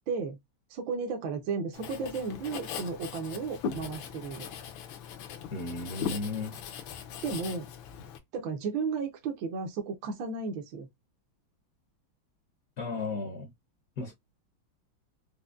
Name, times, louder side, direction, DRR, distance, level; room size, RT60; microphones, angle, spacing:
voice 1, 0.1-0.4 0.7-4.5 7.2-7.7 8.3-10.9, right 5 dB, 75° right, 1.4 m, -34 dB
Writing, 1.7-8.2, left 7 dB, 80° left, 1.4 m, -39 dB
voice 2, 5.5-6.6 12.8-13.5 14.0-14.1, left 3 dB, 65° left, 0.9 m, -34 dB
5.1 x 2.0 x 2.3 m
omnidirectional pair, 2.2 m